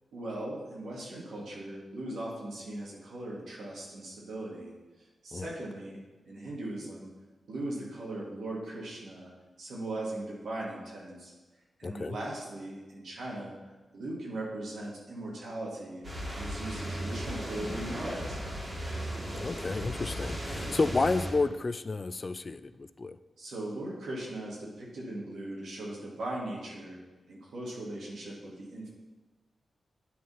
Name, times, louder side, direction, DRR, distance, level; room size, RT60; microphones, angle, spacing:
voice 1, 0.1-4.7 5.2-6.0 6.3-7.1 7.5-9.3 9.6-11.3 11.8-13.6 13.9-16.1 16.3-18.4 23.4-27.0 27.3-28.9, right 1 dB, 85° right, -4 dB, 2.2 m, -39 dB
voice 2, 11.8-12.2 19.4-23.2, left 3 dB, 40° left, 13 dB, 0.3 m, -31 dB
sound 1, 16.0-21.3, equal, 35° right, 2.1 m, -36 dB
9.6 x 3.8 x 5.5 m, 1.2 s
wide cardioid pair, 90°, 0 cm